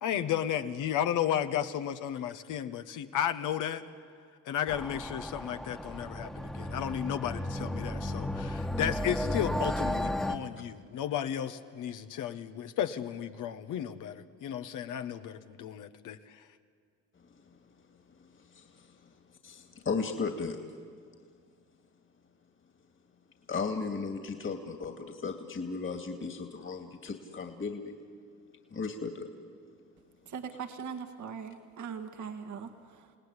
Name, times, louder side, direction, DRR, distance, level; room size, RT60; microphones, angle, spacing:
voice 1, 0.0-3.8 4.4-16.5, left 10 dB, 80° left, 8 dB, 1.3 m, -33 dB
sound 1, 4.7-10.4, left 1 dB, ahead, 1.4 m, -34 dB
voice 2, 18.5-18.9 19.4-20.6 23.5-27.9 28.7-29.3, left 4 dB, 40° left, 5 dB, 2.3 m, -35 dB
voice 3, 30.3-33.2, right 6 dB, 70° right, 6 dB, 1.9 m, -41 dB
29.5 x 18.0 x 9.8 m, 2.1 s
supercardioid pair, 65°, 31 cm